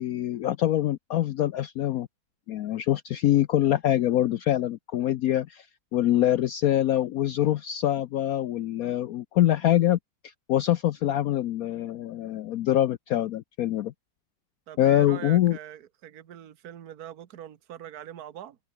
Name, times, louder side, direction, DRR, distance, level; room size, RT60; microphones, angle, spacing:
voice 1, 0.0-2.1 2.5-5.7 5.9-10.0 10.2-13.9 14.8-15.6, left 12 dB, 70° left, 0.8 m, -24 dB
voice 2, 14.7-18.6, right 11 dB, 55° right, 1.6 m, -42 dB
omnidirectional pair, 2.0 m